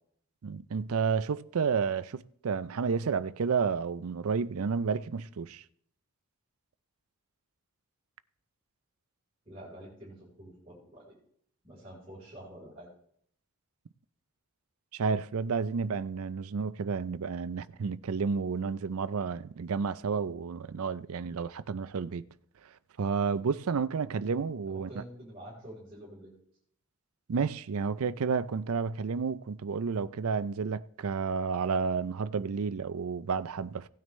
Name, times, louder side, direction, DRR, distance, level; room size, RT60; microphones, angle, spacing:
voice 1, 0.4-5.6 14.9-22.2 23.0-25.0 27.3-33.9, right 5 dB, 80° right, 0.5 m, -31 dB
voice 2, 9.5-11.1 11.6-12.9 24.7-26.3, right 1 dB, 25° right, 4.1 m, -47 dB
17.0 x 9.2 x 3.2 m
head